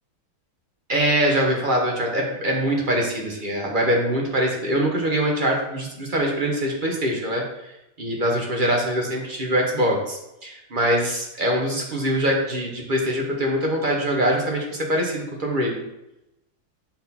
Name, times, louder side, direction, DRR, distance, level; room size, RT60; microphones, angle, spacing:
voice 1, 0.9-7.7 8.0-15.8, equal, 35° right, -1 dB, 1.2 m, -23 dB
6.5 x 4.1 x 4.1 m, 0.88 s
omnidirectional pair, 1.7 m